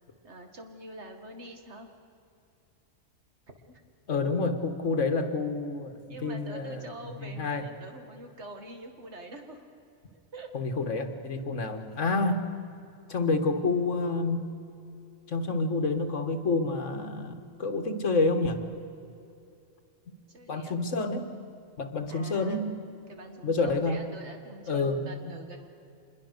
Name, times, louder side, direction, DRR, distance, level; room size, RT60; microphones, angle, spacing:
voice 1, 0.2-1.9 3.7-3.8 5.4-5.5 6.1-9.7 10.3-10.5 20.3-20.7 22.1-22.6 23.1-25.7, right 2 dB, 60° right, 4 dB, 2.4 m, -45 dB
voice 2, 4.1-6.9 7.2-7.6 10.5-12.5 13.1-14.5 15.3-18.6 20.1-20.2 20.5-21.3 21.8-22.7 23.4-24.0 24.7-25.1, left 3 dB, 75° left, 7 dB, 1.9 m, -28 dB
25.5 x 21.5 x 6.7 m, 2.6 s
omnidirectional pair, 1.3 m